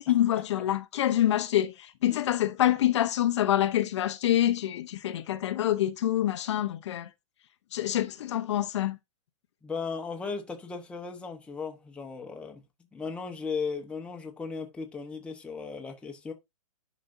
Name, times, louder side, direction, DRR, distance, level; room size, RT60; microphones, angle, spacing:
voice 1, 0.0-7.1 7.7-9.0, left 12 dB, 55° left, 0.8 m, -26 dB
voice 2, 9.6-12.6 12.9-16.3, left 5 dB, 5° left, 1.0 m, -36 dB
11.5 x 5.1 x 2.6 m
hypercardioid pair, 150°, 18 cm